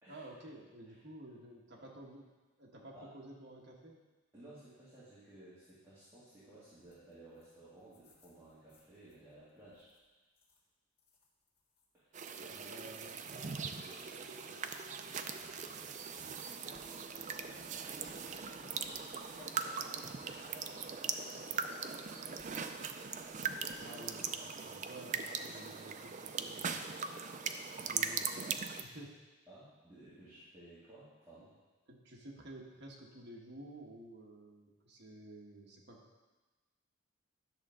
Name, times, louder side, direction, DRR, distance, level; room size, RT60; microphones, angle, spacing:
voice 1, 0.1-2.3 2.6-4.0 12.7-13.2 23.8-26.9 27.8-29.2 31.9-36.0, right 1 dB, 55° right, -1 dB, 1.4 m, -52 dB
voice 2, 4.3-9.9 11.9-15.1 15.3-22.5 29.5-31.5, right 1 dB, 15° right, -12 dB, 2.4 m, -58 dB
sound 1, 6.9-7.1 7.4-7.5 7.8-9.2 9.7-10.0 10.4-10.6 11.0-11.8 12.5-12.6 13.5-15.7 15.9-16.3 16.6-24.1, left 2 dB, 50° left, 1.8 m, -59 dB
sound 2, 12.1-28.8, right 6 dB, 35° right, 0.4 m, -40 dB
11.0 x 6.6 x 3.7 m, 1.2 s
head